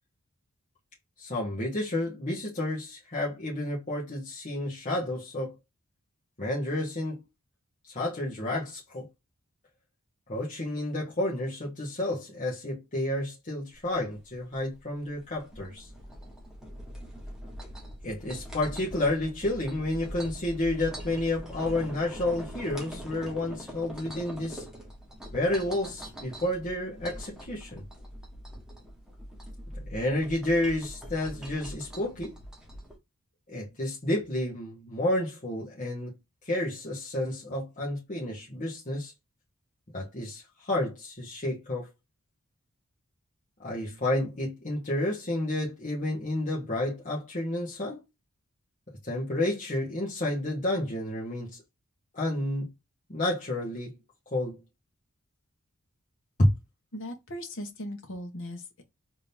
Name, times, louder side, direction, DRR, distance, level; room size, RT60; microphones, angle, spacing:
voice 1, 1.2-5.5 6.4-7.2 7.9-9.1 10.3-15.9 18.0-24.6 25.3-27.9 29.9-32.3 33.5-36.1 36.4-39.1 39.9-41.9 43.6-48.0 49.0-51.6 52.1-52.7 53.1-54.0 54.3-54.6 56.4-56.5, left 1 dB, 35° left, 1.6 m, -30 dB
sound 1, 13.7-33.0, equal, 5° right, 1.5 m, -43 dB
voice 2, 56.9-58.8, left 1 dB, 60° left, 1.3 m, -38 dB
3.8 x 3.5 x 2.7 m
head